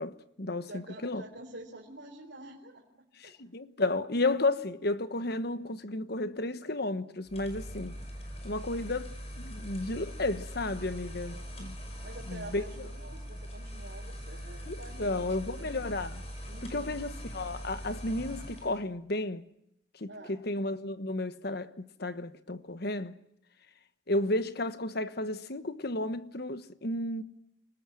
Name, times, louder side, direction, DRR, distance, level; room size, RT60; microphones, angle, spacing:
voice 1, 0.0-1.2 3.2-7.9 8.4-11.8 12.3-12.6 14.7-16.2 16.7-19.4 20.0-23.2 24.1-27.2, left 2 dB, 50° left, 1.2 m, -33 dB
voice 2, 0.6-3.4 11.2-11.5 12.0-15.7 16.5-17.0 20.1-20.4, right 1 dB, 55° right, 4.2 m, -48 dB
sound 1, 7.3-18.8, equal, 30° left, 5.6 m, -42 dB
29.0 x 19.5 x 7.7 m
head